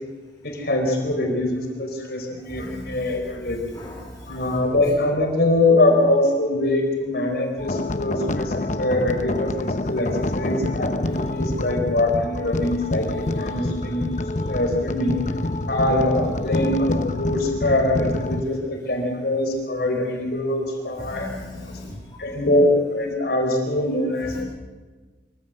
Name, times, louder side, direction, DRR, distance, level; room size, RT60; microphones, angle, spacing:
voice 1, 0.4-3.6 4.3-10.1 10.3-14.1 14.5-15.2 15.7-21.3 22.2-24.4, left 1 dB, 60° left, 2 dB, 4.3 m, -23 dB
voice 2, 2.5-2.9 3.7-4.3 21.0-22.0 24.3-24.4, left 1 dB, 20° left, -3 dB, 3.4 m, -37 dB
sound 1, 7.6-18.4, left 2 dB, 40° left, 0.9 m, -27 dB
24.5 x 15.5 x 8.1 m, 1.4 s
head